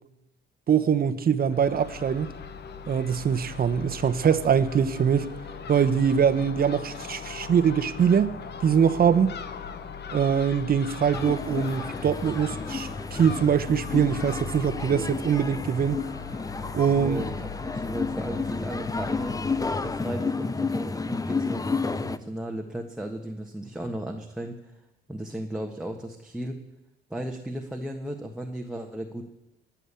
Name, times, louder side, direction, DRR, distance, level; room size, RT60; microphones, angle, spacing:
voice 1, 0.7-2.3 2.9-5.3 5.7-9.3 10.1-16.0 16.7-17.2, right 7 dB, 50° right, 1.1 m, -23 dB
Crow / Gull seagull, 1.5-20.1, left 6 dB, 55° left, 1.3 m, -40 dB
sound 1, 11.1-22.2, left 4 dB, 20° left, 0.6 m, -31 dB
voice 2, 16.8-19.4 19.8-24.5 25.1-26.6 27.1-29.2, right 1 dB, 5° right, 1.5 m, -35 dB
20.0 x 7.3 x 8.5 m
cardioid pair, 90°, 20 cm